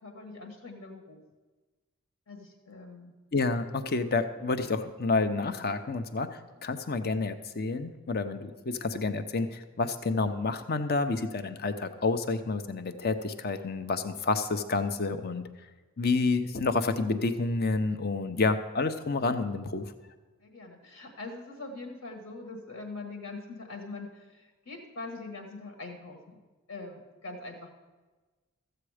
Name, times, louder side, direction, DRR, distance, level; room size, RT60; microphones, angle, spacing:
voice 1, 0.0-1.2 2.3-3.1 20.4-26.4 26.7-27.8, left 3 dB, 70° left, 3 dB, 1.5 m, -43 dB
voice 2, 3.3-15.4 16.0-19.8, left 3 dB, 45° left, 10 dB, 0.7 m, -29 dB
14.0 x 7.9 x 4.9 m, 1.3 s
head